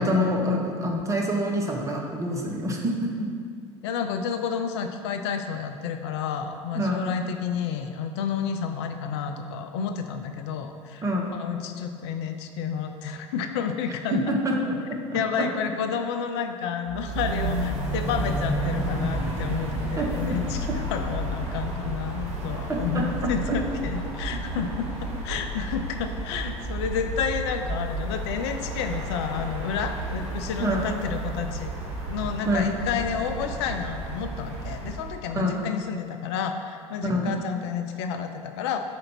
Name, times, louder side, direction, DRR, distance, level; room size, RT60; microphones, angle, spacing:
voice 1, 0.0-3.1 6.7-7.2 11.0-11.3 14.1-14.7 15.1-15.5 20.0-20.1 22.7-23.6 30.6-30.8 32.5-32.7 35.3-35.6 37.0-37.3, equal, 20° right, 0 dB, 1.0 m, -26 dB
voice 2, 3.8-11.0 11.3-14.4 15.1-24.9 25.2-31.8 32.1-38.8, left 7 dB, 60° left, 6 dB, 0.4 m, -30 dB
sound 1, 16.9-35.2, right 1 dB, 45° right, 1.4 m, -31 dB
5.1 x 3.8 x 5.7 m, 2.3 s
figure-of-eight pair, 65°, 16 cm